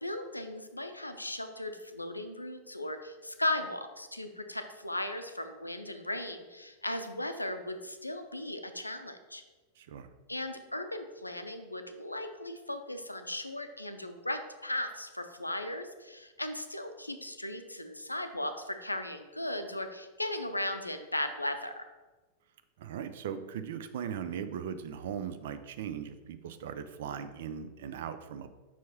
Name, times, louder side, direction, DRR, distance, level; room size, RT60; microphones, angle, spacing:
voice 1, 0.0-9.4 10.3-21.7, left 1 dB, 85° left, 7 dB, 0.5 m, -37 dB
voice 2, 9.8-10.1 22.8-28.5, right 8 dB, 55° right, 10 dB, 0.5 m, -39 dB
5.8 x 4.5 x 4.2 m, 1.2 s
figure-of-eight pair, 90°, 0 cm